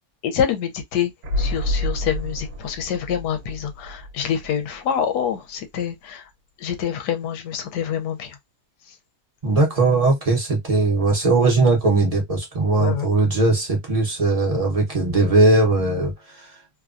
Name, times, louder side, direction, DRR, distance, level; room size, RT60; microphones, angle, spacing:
voice 1, 0.2-1.1 1.4-6.2 6.6-8.4 8.9-9.0 12.7-13.1, left 8 dB, 75° left, 1.2 m, -26 dB
sound 1, 1.2-5.0 5.2-5.3, left 1 dB, 65° right, 1.1 m, -28 dB
voice 2, 9.4-16.5, right 2 dB, 30° right, 0.6 m, -19 dB
3.0 x 2.2 x 2.4 m
omnidirectional pair, 1.9 m